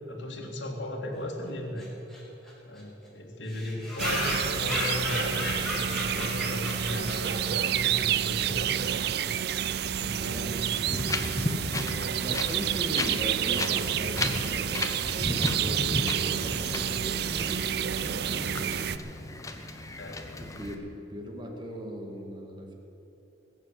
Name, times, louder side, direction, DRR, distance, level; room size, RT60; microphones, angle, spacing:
voice 1, 0.1-1.9 2.7-8.7 9.9-10.5 20.0-20.3, left 1 dB, 75° left, 1 dB, 2.1 m, -36 dB
sound 1, 1.8-1.9 2.1-2.2 2.5-2.6 2.8-2.9 3.5-7.7, left 1 dB, ahead, 3.4 m, -33 dB
sound 2, 4.0-19.0, right 9 dB, 60° right, 0.4 m, -29 dB
voice 2, 10.1-10.9 11.8-18.6 20.4-22.7, equal, 25° right, 1 dB, 1.9 m, -39 dB
Wind, 10.8-20.7, left 2 dB, 15° left, 0.9 m, -34 dB
21.0 x 7.2 x 8.1 m, 3.0 s
head